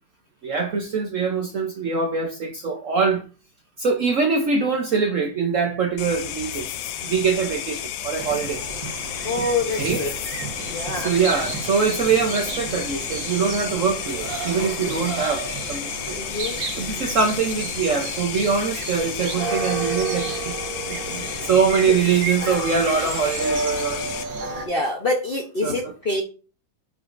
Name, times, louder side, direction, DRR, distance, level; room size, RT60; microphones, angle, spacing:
voice 1, 0.4-3.2 3.8-6.7 7.0-8.6 9.8-10.0 10.9-16.2 16.8-20.5 20.9-24.0 25.6-25.8, right 5 dB, 60° right, 0.8 m, -23 dB
sound 1, 6.0-24.2, left 10 dB, 85° left, 1.4 m, -32 dB
sound 2, 8.2-24.7, right 3 dB, 90° right, 2.2 m, -31 dB
voice 2, 9.2-10.1 10.6-11.2 14.8-15.1 16.1-16.6 21.9-22.0 24.6-26.2, left 2 dB, 45° left, 0.7 m, -26 dB
8.3 x 4.9 x 2.5 m
omnidirectional pair, 2.1 m